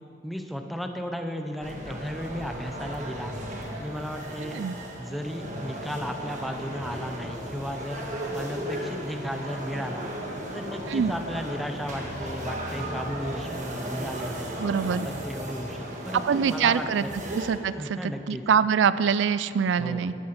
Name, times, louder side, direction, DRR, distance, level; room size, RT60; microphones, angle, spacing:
voice 1, 0.2-3.3 3.8-4.6 5.0-10.1 10.5-14.5 14.9-17.1 17.6-18.4 19.8-20.1, equal, ahead, 4 dB, 0.7 m, -35 dB
sound 1, 1.6-17.5, right 1 dB, 40° right, 1.6 m, -36 dB
voice 2, 4.4-4.8 10.9-11.1 14.6-15.1 16.1-17.0 17.3-20.1, right 7 dB, 85° right, 15 dB, 0.4 m, -24 dB
sound 2, 4.5-15.0, right 1 dB, 70° left, 1.9 m, -46 dB
13.0 x 9.8 x 5.9 m, 2.5 s
head